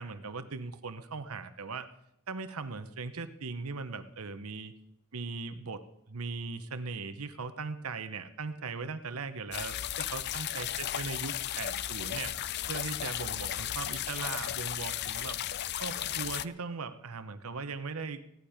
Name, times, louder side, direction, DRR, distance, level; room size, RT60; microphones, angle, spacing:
voice 1, 0.0-1.9 2.3-4.7 5.1-12.4 12.7-15.4 15.8-18.2, right 4 dB, 85° right, 10 dB, 0.9 m, -39 dB
sound 1, 9.5-16.5, left 11 dB, 50° left, 0.4 m, -35 dB
16.5 x 11.5 x 5.0 m, 0.79 s
head